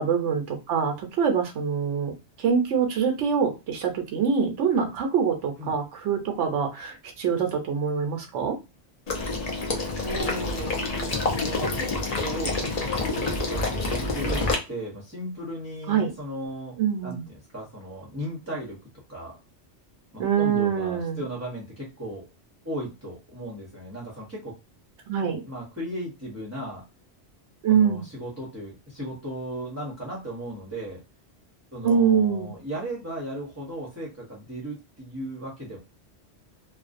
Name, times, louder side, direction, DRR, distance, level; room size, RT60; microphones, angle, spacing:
voice 1, 0.0-2.1 2.4-8.6 15.9-16.1 16.8-17.3 20.2-21.3 25.1-25.4 27.6-28.0 31.8-32.5, right 7 dB, 80° right, 4 dB, 0.9 m, -24 dB
Water / Liquid, 9.1-14.5, left 3 dB, 45° left, 0.5 m, -27 dB
voice 2, 10.0-18.8 19.1-19.4 20.1-22.2 22.6-24.6 25.2-26.8 27.7-31.0 31.7-35.8, right 1 dB, 15° right, -5 dB, 0.6 m, -36 dB
2.4 x 2.1 x 2.4 m, 0.27 s
omnidirectional pair, 1.2 m